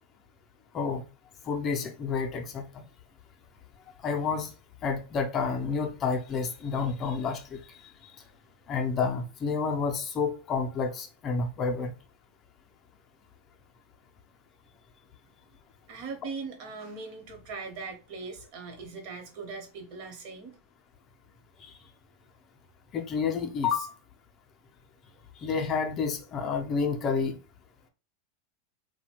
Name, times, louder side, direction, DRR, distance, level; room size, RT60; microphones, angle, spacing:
voice 1, 1.5-2.6 4.0-4.5 4.8-7.6 8.7-11.9 22.9-23.9 25.4-27.4, left 5 dB, 30° left, 0.5 m, -29 dB
voice 2, 15.9-20.6, right 4 dB, 50° right, 1.0 m, -40 dB
2.7 x 2.1 x 2.9 m
supercardioid pair, 140°, 0 cm